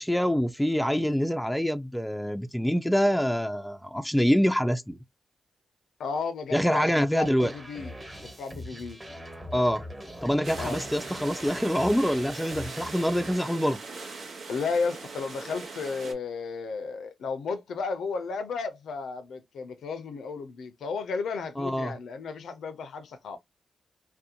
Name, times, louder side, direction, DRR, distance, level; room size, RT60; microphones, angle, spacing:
voice 1, 0.0-5.0 6.5-7.5 9.5-9.8 10.2-13.8 21.6-22.0, equal, 5° left, 0.4 m, -25 dB
voice 2, 6.0-9.0 10.6-10.8 14.5-23.4, left 4 dB, 80° left, 0.4 m, -33 dB
sound 1, 7.2-13.4, equal, 20° right, 1.2 m, -42 dB
sound 2, 10.4-16.1, right 4 dB, 75° right, 0.8 m, -40 dB
2.5 x 2.1 x 2.7 m
cardioid pair, 55°, 0 cm